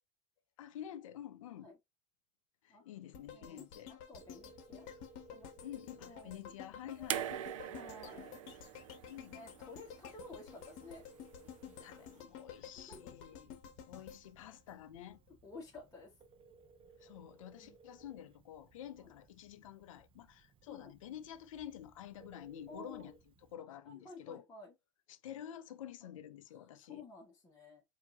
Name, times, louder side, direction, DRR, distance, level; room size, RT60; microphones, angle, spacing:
voice 1, 0.6-1.7 2.6-3.9 5.6-7.3 9.1-9.4 11.8-13.6 13.9-15.2 17.0-23.1 23.5-24.5 25.1-27.1, left 10 dB, 80° left, 0.6 m, -49 dB
sound 1, 3.1-15.3 15.7-15.8, left 8 dB, 60° left, 1.1 m, -52 dB
voice 2, 3.3-3.6 3.9-4.9 5.3-5.5 6.1-6.4 6.8-7.4 7.7-8.8 9.3-11.0 12.7-13.1 15.4-16.1 17.6-17.8 19.0-19.1 20.7-20.9 22.7-23.1 23.8-24.7 26.9-27.8, left 3 dB, 20° left, 1.7 m, -53 dB
Telephone, 4.1-23.5, right 4 dB, 35° right, 0.7 m, -63 dB
sound 2, 7.1-10.3 11.5-11.6, right 11 dB, 80° right, 0.5 m, -42 dB
4.5 x 2.8 x 2.7 m
hypercardioid pair, 100°, 17 cm